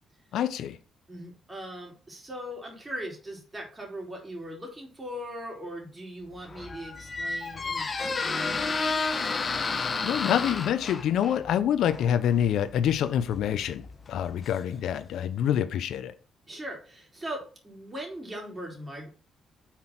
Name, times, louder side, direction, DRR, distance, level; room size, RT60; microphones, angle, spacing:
voice 1, 0.3-0.8 9.7-13.8 14.1-16.1, left 9 dB, 75° left, 0.6 m, -26 dB
voice 2, 1.1-9.0 16.5-19.1, equal, 20° right, 3.2 m, -40 dB
Squeak, 6.3-15.1, left 4 dB, 35° left, 0.9 m, -32 dB
5.8 x 4.5 x 5.8 m
cardioid pair, 90°, 0 cm